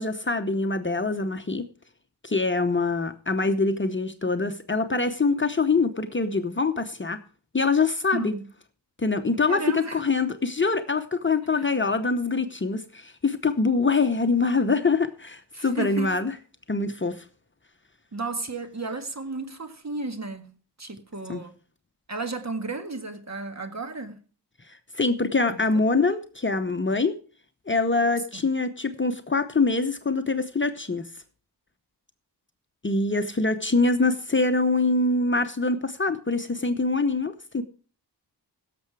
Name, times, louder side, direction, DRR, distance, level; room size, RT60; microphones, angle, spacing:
voice 1, 0.0-1.7 2.2-7.2 7.5-8.3 9.0-16.3 16.7-17.2 21.3-21.4 24.9-27.2 27.7-31.1 32.8-37.6, left 3 dB, 30° left, 0.9 m, -24 dB
voice 2, 8.1-8.5 9.4-10.0 11.5-11.7 15.5-16.1 18.1-20.5 20.8-21.6 22.1-24.2 25.5-25.6 28.3-28.4, right 3 dB, 40° right, 1.7 m, -33 dB
16.5 x 6.9 x 4.7 m
wide cardioid pair, 70°, 42 cm